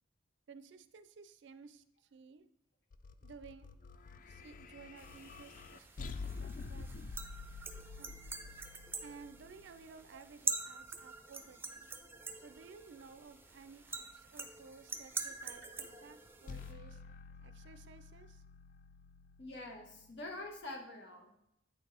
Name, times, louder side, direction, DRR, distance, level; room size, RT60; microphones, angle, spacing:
voice 1, 0.5-2.5 3.2-3.7 4.3-7.2 8.0-8.2 9.0-11.9 12.4-17.0 17.4-18.4, right 5 dB, 70° right, 11 dB, 0.4 m, -56 dB
sound 1, 2.9-10.2 16.5-20.6, left 4 dB, 45° left, 0.3 m, -49 dB
sound 2, 5.0-16.7, right 4 dB, 10° right, 0.5 m, -45 dB
voice 2, 19.4-21.3, left 2 dB, 65° left, 2 dB, 1.2 m, -46 dB
8.7 x 4.4 x 3.2 m, 0.79 s
head